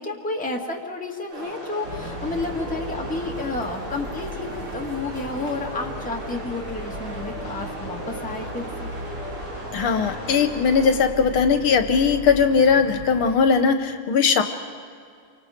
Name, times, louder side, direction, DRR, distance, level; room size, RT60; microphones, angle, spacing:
voice 1, 0.0-8.9, left 3 dB, 5° left, -1 dB, 1.8 m, -31 dB
sound 1, 1.3-10.9, right 1 dB, 85° right, 5.0 m, -36 dB
sound 2, 1.8-13.4, left 1 dB, 35° right, 3.9 m, -37 dB
voice 2, 9.7-14.4, left 6 dB, 75° left, 7 dB, 1.8 m, -19 dB
28.5 x 25.0 x 5.1 m, 2.3 s
omnidirectional pair, 2.3 m